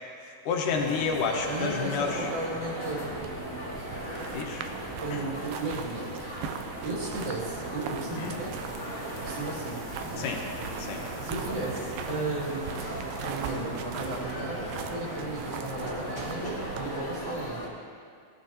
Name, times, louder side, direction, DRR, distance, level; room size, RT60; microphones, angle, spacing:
voice 1, 0.5-2.3 4.3-4.7 5.1-5.2 8.1-8.4 10.2-10.4 10.8-11.0, left 5 dB, 75° left, 1 dB, 2.7 m, -30 dB
sound 1, 0.7-17.7, equal, 10° left, 1.5 m, -38 dB
voice 2, 1.5-3.1 5.0-8.7 9.2-9.8 10.1-10.3 11.2-12.7 13.2-17.6, right 2 dB, 65° right, -5 dB, 3.9 m, -35 dB
sound 2, 3.1-16.9, right 7 dB, 85° right, 2.4 m, -40 dB
19.0 x 12.0 x 2.9 m, 2.3 s
omnidirectional pair, 4.0 m